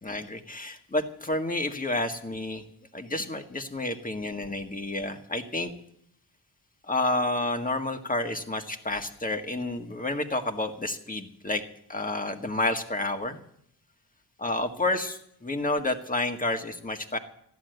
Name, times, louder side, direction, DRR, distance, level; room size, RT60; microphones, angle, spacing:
voice 1, 0.0-2.6 2.9-5.7 6.8-11.6 11.9-13.4 14.4-17.2, left 2 dB, 20° left, 5 dB, 1.7 m, -30 dB
15.5 x 11.0 x 8.0 m, 0.71 s
wide cardioid pair, 110°, 42 cm